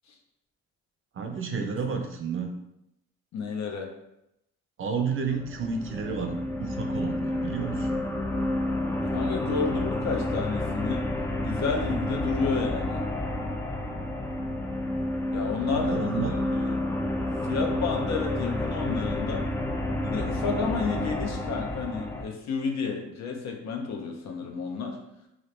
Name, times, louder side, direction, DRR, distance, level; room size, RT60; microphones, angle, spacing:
voice 1, 1.2-2.5 4.8-8.0 15.7-16.3, right 5 dB, 45° right, 3 dB, 0.5 m, -31 dB
voice 2, 3.3-3.9 9.1-11.0 11.4-13.0 15.3-16.8 17.5-19.5 20.0-25.0, left 5 dB, 65° left, 2 dB, 0.7 m, -31 dB
sound 1, 5.2-22.2, left 1 dB, 10° left, 0.4 m, -30 dB
3.1 x 2.4 x 3.2 m, 0.84 s
cardioid pair, 90°, 30 cm